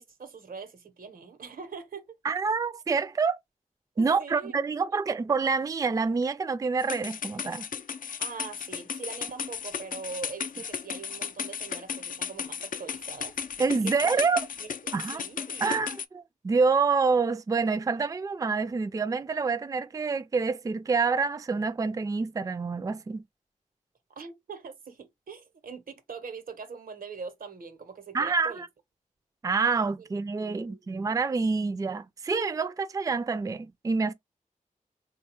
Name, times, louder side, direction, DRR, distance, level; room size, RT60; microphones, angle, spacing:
voice 1, 0.0-2.2 3.9-5.0 8.2-13.3 13.8-14.2 14.6-15.9 24.2-28.6 30.0-30.1 30.4-31.0, right 5 dB, 90° right, 0.9 m, -43 dB
voice 2, 2.2-3.4 4.0-7.7 13.6-14.4 14.9-15.2 15.6-23.2 28.1-28.7 29.4-34.1, right 4 dB, 25° right, 0.3 m, -27 dB
sound 1, 6.8-16.1, left 7 dB, 70° left, 0.4 m, -35 dB
3.9 x 2.3 x 2.8 m
cardioid pair, 55°, 14 cm